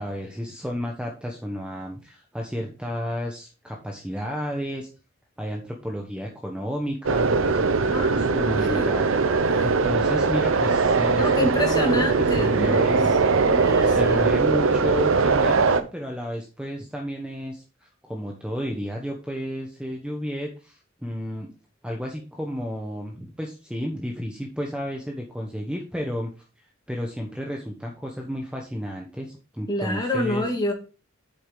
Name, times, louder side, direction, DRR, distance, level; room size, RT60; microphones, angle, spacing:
voice 1, 0.0-4.9 5.4-13.1 13.8-21.5 21.8-26.3 26.9-30.4, equal, 5° right, 1.1 m, -32 dB
sound 1, 7.0-15.8, right 4 dB, 75° right, 0.8 m, -21 dB
voice 2, 7.9-8.9 9.5-9.7 11.2-13.0 13.5-14.4 29.7-30.7, left 1 dB, 20° left, 2.1 m, -28 dB
7.9 x 6.4 x 3.9 m
head